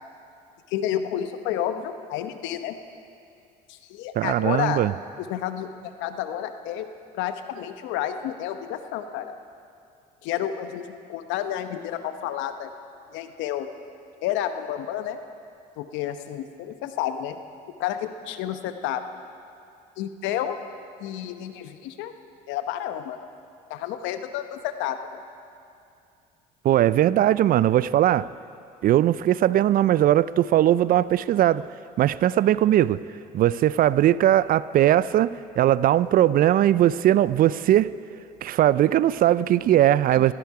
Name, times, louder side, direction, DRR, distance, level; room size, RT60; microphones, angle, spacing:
voice 1, 0.7-2.8 3.7-4.8 5.2-6.9 7.1-9.3 10.2-12.7 13.1-13.7 14.2-15.2 15.8-17.4 17.8-19.0 20.0-20.6 21.0-22.1 22.5-23.2 23.7-25.2 40.1-40.3, left 11 dB, 70° left, 9 dB, 0.9 m, -30 dB
voice 2, 4.2-4.9 26.6-28.3 28.8-31.7 32.0-33.0 33.3-37.9 38.4-40.3, right 12 dB, 45° right, 18 dB, 0.4 m, -19 dB
16.0 x 14.0 x 4.8 m, 2.5 s
hypercardioid pair, 75°, 20 cm